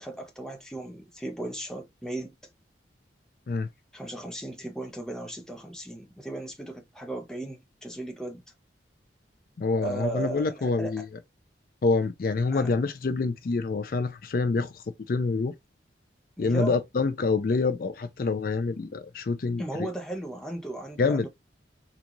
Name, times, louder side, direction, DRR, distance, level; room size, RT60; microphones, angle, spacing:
voice 1, 0.0-2.3 3.9-8.4 9.8-10.9 12.5-12.7 16.4-16.8 19.6-21.3, right 2 dB, 5° left, 0.6 m, -36 dB
voice 2, 9.6-11.0 11.8-15.5 16.4-19.9 21.0-21.3, left 4 dB, 50° left, 0.4 m, -26 dB
3.9 x 2.3 x 2.9 m
head